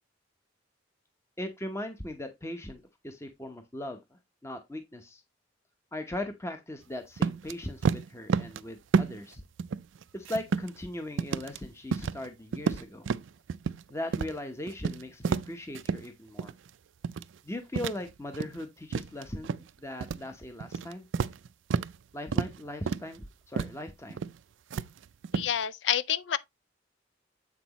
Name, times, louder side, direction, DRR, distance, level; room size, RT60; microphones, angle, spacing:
voice 1, 1.4-5.2 5.9-9.4 10.1-13.1 13.9-16.5 17.4-19.5 19.8-21.1 22.1-24.2, left 1 dB, 15° left, 0.8 m, -39 dB
sound 1, 7.2-7.5 7.8-8.6 8.9-9.3 9.6-10.8 11.2-11.6 11.9-12.3 12.5-13.8 14.1-14.4 14.7-16.1 16.4-16.7 17.0-17.4 17.7-18.6 18.9-19.7 20.0-20.3 20.6-22.0 22.3-22.6 22.9-23.2 23.6-23.8 24.1-24.4 24.7-25.5, right 5 dB, 85° right, 0.4 m, -30 dB
voice 2, 25.3-26.4, left 10 dB, 70° left, 0.5 m, -28 dB
7.8 x 6.0 x 2.9 m
head